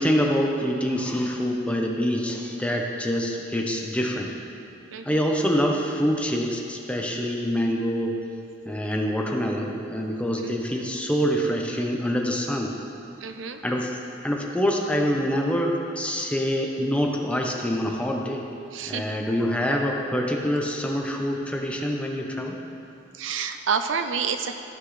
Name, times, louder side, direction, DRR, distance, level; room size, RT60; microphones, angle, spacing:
voice 1, 0.0-4.3 5.0-8.2 8.7-12.7 13.6-14.0 14.2-18.5 18.9-22.6, equal, 5° left, 0 dB, 0.8 m, -25 dB
voice 2, 4.9-5.2 10.4-10.5 13.2-13.6 18.7-19.2 23.1-24.5, right 6 dB, 80° right, 8 dB, 0.5 m, -29 dB
15.0 x 6.0 x 3.2 m, 2.7 s
head